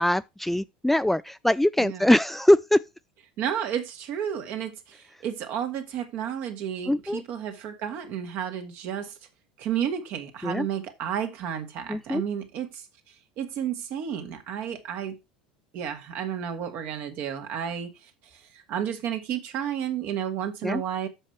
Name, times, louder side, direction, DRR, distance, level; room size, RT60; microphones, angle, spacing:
voice 1, 0.0-2.8 6.9-7.2 10.4-10.7 11.9-12.2 20.6-20.8, left 1 dB, 5° left, 0.4 m, -22 dB
voice 2, 1.8-2.1 3.4-9.2 9.6-12.9 13.4-15.2 15.7-21.1, right 9 dB, 55° right, 2.0 m, -32 dB
7.7 x 6.5 x 4.7 m
hypercardioid pair, 75°, 4 cm